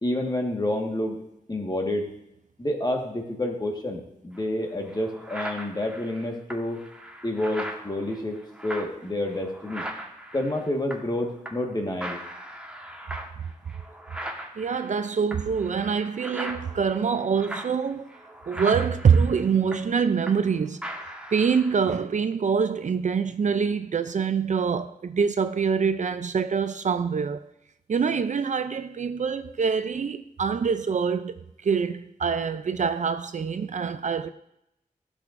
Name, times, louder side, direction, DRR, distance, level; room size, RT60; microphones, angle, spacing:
voice 1, 0.0-1.2 1.5-2.1 2.6-6.8 7.2-9.8 10.3-12.2, left 1 dB, 30° left, 1.5 m, -29 dB
sound 1, 4.3-4.4 4.9-11.2 11.4-11.7 12.0-20.5 20.8-21.8, right 1 dB, 5° right, 1.3 m, -39 dB
voice 2, 14.6-18.1 18.5-20.8 21.3-27.5 27.9-34.3, right 6 dB, 55° right, 0.4 m, -25 dB
12.0 x 6.3 x 2.5 m
cardioid pair, 55°, 15 cm